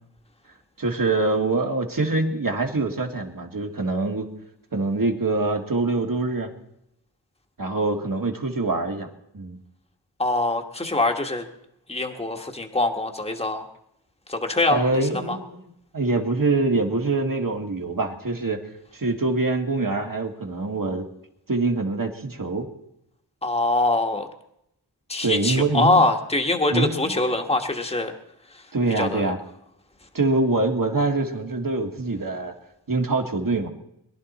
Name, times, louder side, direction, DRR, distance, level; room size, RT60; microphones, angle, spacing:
voice 1, 0.8-4.3 4.7-6.5 7.6-9.1 9.3-9.6 14.7-18.6 18.9-21.1 21.5-22.7 25.2-26.0 26.7-27.1 28.7-29.4 30.1-32.5 32.9-33.7, right 3 dB, 55° right, 4 dB, 1.9 m, -24 dB
voice 2, 10.2-11.4 11.9-13.6 14.3-15.0 15.3-15.4 23.4-24.3 25.1-28.1 29.0-29.3, left 2 dB, 15° left, 3 dB, 1.5 m, -23 dB
22.5 x 11.0 x 4.2 m, 0.79 s
cardioid pair, 40°, 40 cm